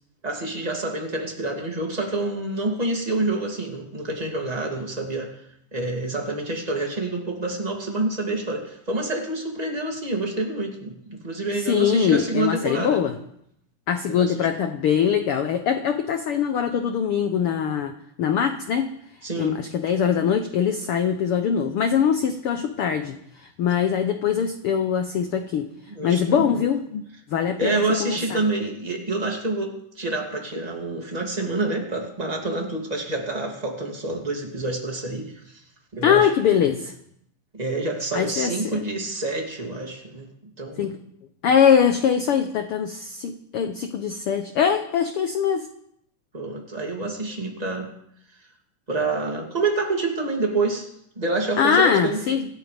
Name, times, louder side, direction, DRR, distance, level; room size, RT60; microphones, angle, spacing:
voice 1, 0.2-5.3 5.7-13.0 14.1-14.5 19.2-19.6 25.9-26.5 27.6-35.6 35.9-36.3 37.5-40.3 40.6-40.9 46.3-47.9 48.9-50.9 51.2-52.2, right 2 dB, 15° right, 0 dB, 2.3 m, -27 dB
voice 2, 11.6-13.1 13.9-17.9 18.2-18.9 19.4-25.7 26.0-27.0 27.3-28.4 36.0-36.9 38.1-38.8 40.8-41.0 41.4-45.7 51.6-52.5, left 7 dB, 85° left, 7 dB, 1.2 m, -22 dB
25.5 x 13.0 x 3.5 m, 0.72 s
omnidirectional pair, 3.7 m